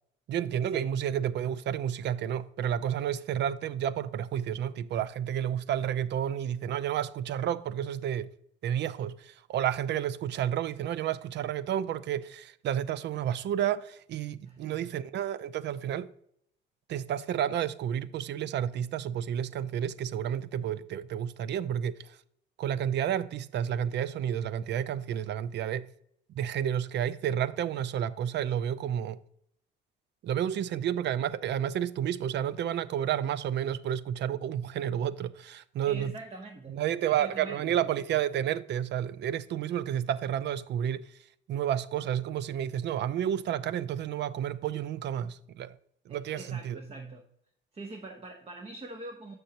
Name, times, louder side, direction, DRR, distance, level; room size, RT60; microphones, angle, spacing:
voice 1, 0.3-8.3 8.6-16.1 16.9-22.2 22.6-25.9 26.3-29.2 30.2-36.1 36.7-41.1 41.5-45.8 46.1-46.8, right 10 dB, 60° right, 0.4 m, -31 dB
voice 2, 14.4-14.9 35.9-37.8 46.1-47.2 47.7-49.3, right 2 dB, 30° right, 0.9 m, -44 dB
7.8 x 6.2 x 2.8 m
cardioid pair, 90°, 20 cm